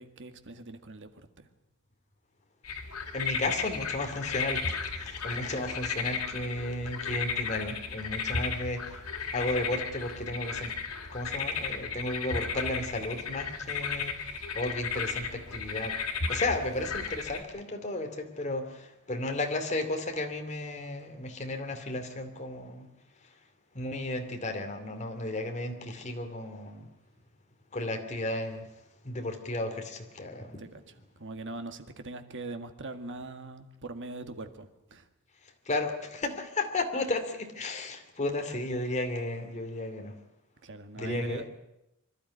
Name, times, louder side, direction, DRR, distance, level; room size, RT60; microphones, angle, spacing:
voice 1, 0.0-1.5 30.6-35.1 40.6-41.5, right 2 dB, 60° right, 8 dB, 1.8 m, -42 dB
sound 1, 2.6-17.4, left 5 dB, 90° left, 2.8 m, -34 dB
voice 2, 3.1-9.0 9.3-10.7 11.1-16.0 16.3-22.9 23.7-26.9 27.7-28.7 29.0-30.6 35.7-40.2 41.0-41.4, left 2 dB, 35° left, 4 dB, 2.5 m, -34 dB
25.5 x 12.5 x 9.8 m, 0.89 s
head